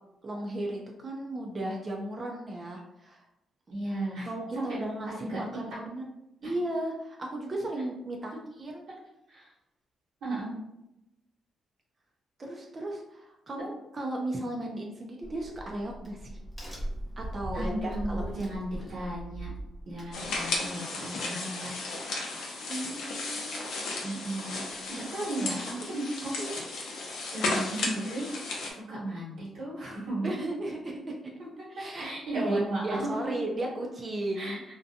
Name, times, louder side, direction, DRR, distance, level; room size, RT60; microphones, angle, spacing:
voice 1, 0.2-3.2 4.3-6.0 6.4-8.3 8.6-8.8 12.4-16.4 17.2-18.4 22.7-23.8 30.2-31.2 31.7-34.6, right 1 dB, 30° right, 0 dB, 0.4 m, -35 dB
voice 2, 3.7-4.3 4.5-4.6 5.1-5.4 6.4-6.5 9.3-9.5 10.2-10.5 17.5-19.5 19.9-21.7 24.0-26.5 27.3-28.3 28.7-30.3 31.7-33.1 34.3-34.6, right 1 dB, 85° right, -10 dB, 1.1 m, -35 dB
Crack, 15.2-20.7, right 1 dB, 5° left, 0.9 m, -39 dB
sound 1, 20.1-28.7, left 3 dB, 85° left, 0.5 m, -34 dB
2.5 x 2.2 x 2.7 m, 0.87 s
cardioid pair, 120°, 0 cm